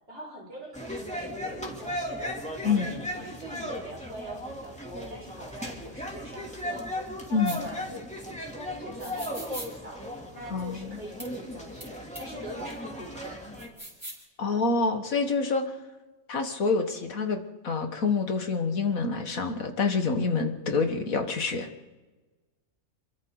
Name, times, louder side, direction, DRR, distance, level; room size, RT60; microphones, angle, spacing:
voice 1, 0.1-2.4 2.7-7.0 7.3-8.1 8.4-13.4, equal, 55° right, -4 dB, 5.9 m, -43 dB
sound 1, 0.7-13.7, equal, 5° left, 3.0 m, -37 dB
sound 2, 7.4-7.6 9.0-9.7 11.2-11.3 11.8-11.9 12.1-12.2 13.6-14.2, right 1 dB, 20° right, 6.0 m, -40 dB
voice 2, 10.5-11.0 14.4-15.7 16.3-21.7, left 4 dB, 90° left, 6 dB, 2.1 m, -27 dB
28.5 x 22.5 x 4.0 m, 1.2 s
omnidirectional pair, 1.4 m